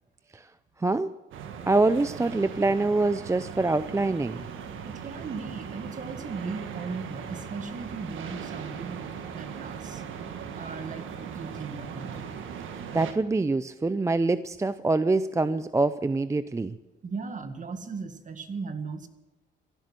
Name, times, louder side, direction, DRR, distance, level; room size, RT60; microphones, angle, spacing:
voice 1, 0.8-1.1 1.6-4.4 12.9-16.8, right 3 dB, 15° right, 14 dB, 0.5 m, -25 dB
sound 1, 1.3-13.1, right 7 dB, 80° right, 1.6 m, -39 dB
voice 2, 4.8-9.0 9.3-10.0 10.6-12.3 17.0-19.1, right 4 dB, 40° right, 8 dB, 1.8 m, -37 dB
15.5 x 12.0 x 7.5 m, 1.1 s
cardioid pair, 90°, 20 cm